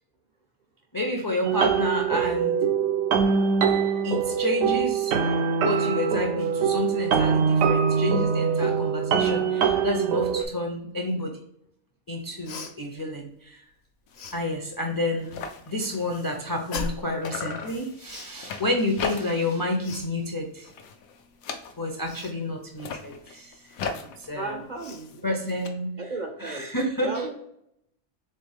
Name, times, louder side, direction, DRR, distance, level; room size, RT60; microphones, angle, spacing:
voice 1, 0.9-2.6 4.0-5.2 5.6-11.4 12.1-13.7 14.3-15.4 15.7-20.7 21.8-23.6 24.2-24.6 25.2-25.9 26.4-27.3, left 1 dB, 30° left, 2 dB, 0.4 m, -29 dB
sound 1, 1.4-10.4, right 6 dB, 75° right, 1.0 m, -23 dB
Cough, 12.4-12.7 14.1-14.4 16.7-17.1 18.0-18.3 19.8-20.1 22.0-22.3 24.2-24.3 24.8-25.1, left 3 dB, 55° left, 0.9 m, -36 dB
sound 2, 14.1-14.3 14.7-14.8 15.0-17.0 17.2-19.6 19.9-20.3 20.6-22.1 22.7-25.7, left 5 dB, 85° left, 1.1 m, -38 dB
voice 2, 24.3-25.3 26.0-26.7 27.0-27.3, right 3 dB, 55° right, 4 dB, 0.5 m, -34 dB
4.3 x 3.5 x 3.5 m, 0.76 s
omnidirectional pair, 1.4 m